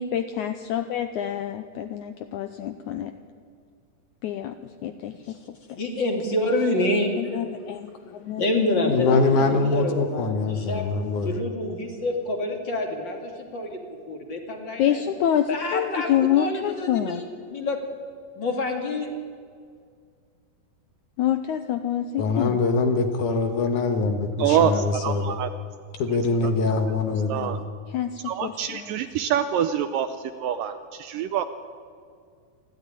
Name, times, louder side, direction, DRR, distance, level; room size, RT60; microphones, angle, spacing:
voice 1, 0.0-3.1 4.2-4.5 4.8-5.1 5.7-5.8 7.2-8.9 14.8-17.2 21.2-22.6 27.9-28.9, left 10 dB, 85° left, 8 dB, 1.7 m, -27 dB
voice 2, 5.8-7.2 8.4-9.2 9.5-10.8 11.2-13.8 14.1-15.0 15.5-17.8 18.4-19.1, left 1 dB, 35° left, 3 dB, 2.7 m, -27 dB
voice 3, 8.8-11.4 22.2-25.4 26.0-27.6, left 3 dB, 65° left, 6 dB, 2.4 m, -23 dB
voice 4, 24.4-25.5 27.3-27.6 28.2-31.5, right 9 dB, 75° right, 10 dB, 2.1 m, -25 dB
28.0 x 12.5 x 10.0 m, 2.2 s
omnidirectional pair, 4.5 m